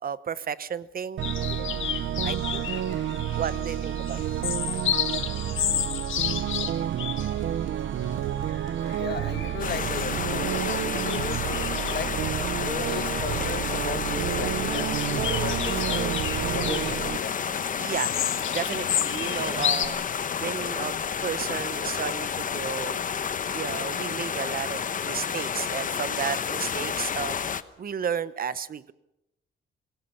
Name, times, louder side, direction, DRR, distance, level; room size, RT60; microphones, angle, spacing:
voice 1, 0.0-1.5 2.2-2.6 3.4-4.2 6.6-6.7 9.1-9.3 16.6-17.1 17.8-20.0 20.4-20.9 21.2-23.0 23.5-27.4 27.8-28.9, right 7 dB, 50° right, 16 dB, 0.9 m, -33 dB
sound 1, 1.2-19.9, left 10 dB, 90° left, 1.7 m, -33 dB
sound 2, 1.2-17.2, right 11 dB, 75° right, 0.8 m, -30 dB
voice 2, 8.9-10.7 11.0-11.4 11.9-12.2 12.5-16.2 16.5-17.4, left 8 dB, 60° left, 12 dB, 1.3 m, -37 dB
sound 3, 9.6-27.6, left 7 dB, 45° left, 1.0 m, -30 dB
26.5 x 17.0 x 7.0 m, 0.89 s
cardioid pair, 130°, 20 cm